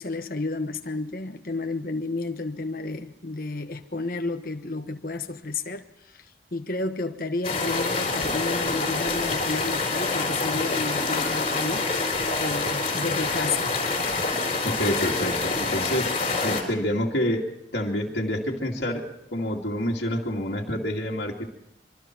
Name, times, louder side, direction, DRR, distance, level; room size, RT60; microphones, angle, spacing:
voice 1, 0.0-11.9 12.4-13.7, left 3 dB, 50° left, 6 dB, 1.1 m, -31 dB
sound 1, 7.4-16.6, left 3 dB, 35° left, 4.2 m, -26 dB
voice 2, 14.6-16.1 16.4-17.4 17.7-21.5, equal, 65° left, -2 dB, 2.4 m, -27 dB
24.0 x 24.0 x 4.6 m, 0.82 s
head